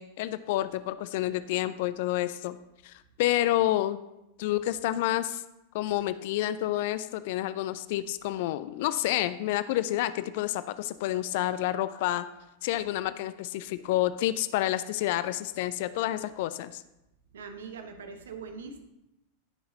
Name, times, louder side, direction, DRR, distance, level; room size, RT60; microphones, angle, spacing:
voice 1, 0.0-2.6 2.8-4.0 4.4-5.4 5.7-12.3 12.6-16.8, left 14 dB, 50° left, 14 dB, 0.3 m, -29 dB
voice 2, 17.3-18.8, right 5 dB, 65° right, 7 dB, 1.0 m, -42 dB
15.5 x 5.6 x 2.8 m, 0.91 s
figure-of-eight pair, 90°, 0 cm